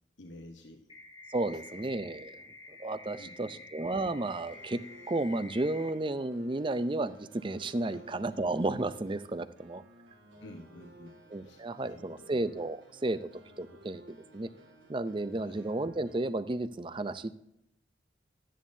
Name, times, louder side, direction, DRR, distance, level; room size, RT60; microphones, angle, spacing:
voice 1, 0.2-0.9 1.5-1.8 3.2-3.6 7.8-8.1 10.4-12.3 15.4-15.6, left 1 dB, 90° left, 3 dB, 1.1 m, -51 dB
sound 1, 0.9-5.9, left 3 dB, 30° left, 1.4 m, -50 dB
voice 2, 1.3-2.4 2.7-9.8 11.3-13.3 13.6-14.5 14.9-17.5, right 2 dB, 25° right, 13 dB, 0.5 m, -33 dB
sound 2, 4.3-16.3, right 1 dB, 80° right, 2.0 m, -56 dB
12.5 x 10.0 x 2.7 m, 0.79 s
head